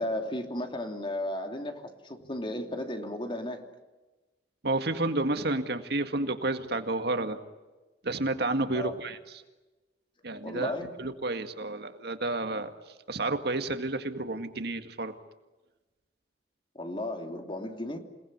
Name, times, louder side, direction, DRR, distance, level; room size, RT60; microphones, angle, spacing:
voice 1, 0.0-3.7 8.7-9.0 10.4-10.9 16.7-18.0, left 1 dB, 30° left, 5 dB, 3.0 m, -34 dB
voice 2, 4.6-7.4 8.0-9.2 10.2-10.7 11.0-12.7 13.1-15.1, right 2 dB, 65° right, 8 dB, 2.0 m, -30 dB
28.5 x 19.5 x 9.8 m, 1.1 s
head